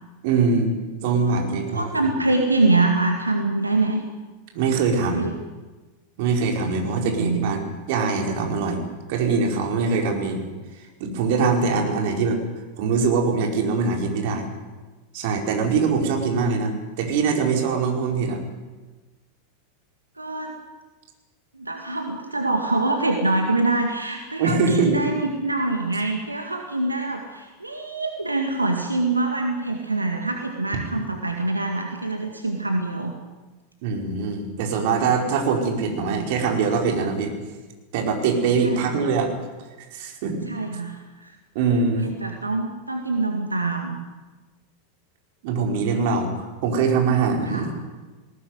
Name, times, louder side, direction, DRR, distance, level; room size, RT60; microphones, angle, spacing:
voice 1, 0.2-0.8 1.0-2.1 4.5-5.3 6.2-8.8 9.1-10.4 10.8-12.4 12.8-14.5 15.1-18.4 24.4-25.1 33.8-37.4 37.9-39.3 39.9-40.4 41.5-42.1 45.4-47.7, right 4 dB, 50° right, 2 dB, 4.8 m, -23 dB
voice 2, 1.2-4.0 5.0-5.3 6.6-7.5 16.6-16.8 20.2-20.5 21.5-33.1 38.6-38.9 40.5-41.3 42.0-44.0 47.5-47.7, right 2 dB, 85° right, 3 dB, 2.1 m, -25 dB
20.5 x 18.0 x 9.6 m, 1.2 s
figure-of-eight pair, 90°, 0 cm